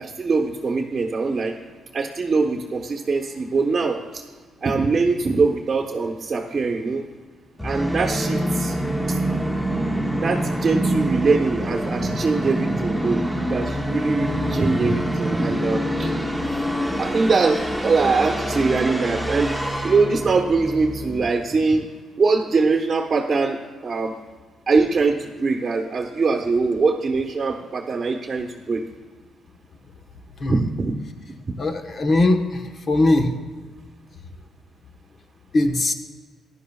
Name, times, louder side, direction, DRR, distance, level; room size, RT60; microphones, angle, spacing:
voice 1, 0.0-1.6 1.9-4.2 4.6-7.0 7.6-8.8 9.1-9.2 10.2-16.1 17.0-19.5 19.8-21.9 22.2-24.1 24.7-28.8 30.5-30.9 31.5-31.6, right 4 dB, 35° right, 0 dB, 1.0 m, -22 dB
Musical instrument, 7.6-21.3, equal, 5° left, 0.9 m, -25 dB
voice 2, 31.6-32.6 32.9-33.4 35.5-35.9, left 2 dB, 45° left, 5 dB, 1.1 m, -19 dB
16.0 x 11.0 x 2.3 m, 1.5 s
cardioid pair, 90°, 0 cm